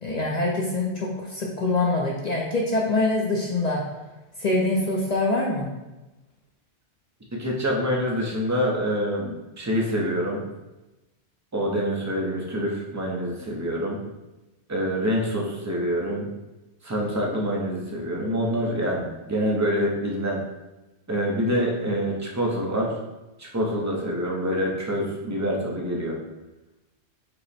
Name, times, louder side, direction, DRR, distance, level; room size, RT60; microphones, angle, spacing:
voice 1, 0.0-3.8 4.4-5.7, left 2 dB, 50° left, -2 dB, 0.6 m, -24 dB
voice 2, 7.3-10.4 11.5-14.0 14.7-16.3 16.8-20.4 21.1-22.9 23.4-26.2, equal, 20° right, -2 dB, 0.5 m, -26 dB
5.5 x 2.1 x 4.2 m, 1.0 s
omnidirectional pair, 1.2 m